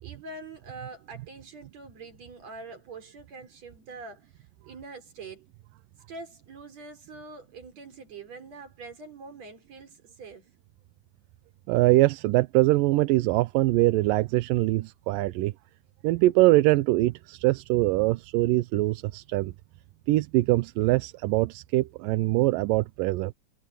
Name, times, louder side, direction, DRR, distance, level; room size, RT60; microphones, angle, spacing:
voice 1, 0.0-4.3 4.6-5.5 6.1-10.5, right 3 dB, 50° right, 5.1 m, -44 dB
voice 2, 11.7-15.5 16.0-19.5 20.1-23.3, right 18 dB, 90° right, 2.3 m, -23 dB
omnidirectional pair, 3.8 m